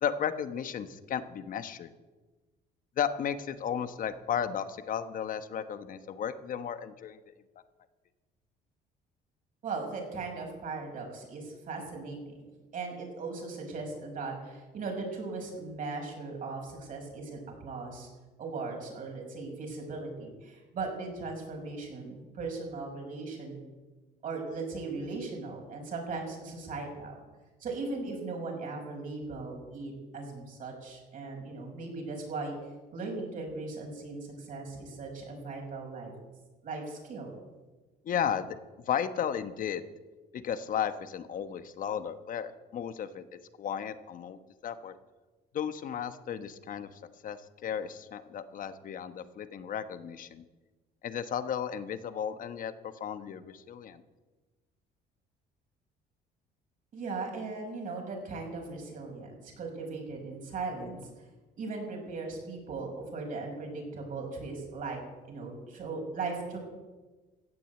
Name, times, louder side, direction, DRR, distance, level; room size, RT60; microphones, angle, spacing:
voice 1, 0.0-1.9 3.0-7.3 38.0-38.6 38.9-39.8 40.3-43.2 43.6-45.0 45.5-50.4 51.0-54.0, left 8 dB, 55° left, 11 dB, 1.2 m, -34 dB
voice 2, 9.6-12.4 12.7-18.1 18.4-23.6 24.2-27.2 27.6-32.5 32.9-36.1 36.6-37.3 56.9-61.0 61.6-65.0 65.3-66.6, right 3 dB, 50° right, 1 dB, 5.6 m, -38 dB
15.5 x 9.2 x 8.3 m, 1.2 s
cardioid pair, 110°, 17 cm